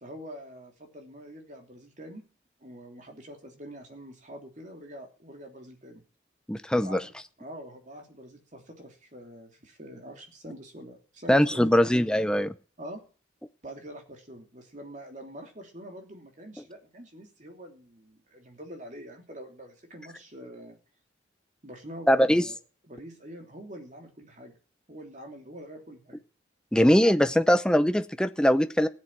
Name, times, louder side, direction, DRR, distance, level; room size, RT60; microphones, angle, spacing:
voice 1, 0.0-2.2 2.6-6.0 6.8-7.0 7.4-11.9 12.8-13.0 13.6-20.8 21.6-22.6 22.8-24.6 24.9-26.2, right 1 dB, 40° right, 3 dB, 3.1 m, -45 dB
voice 2, 6.5-7.0 11.3-12.5 22.1-22.4 26.7-28.9, equal, 5° left, 11 dB, 0.6 m, -21 dB
16.0 x 7.8 x 7.6 m, 0.38 s
head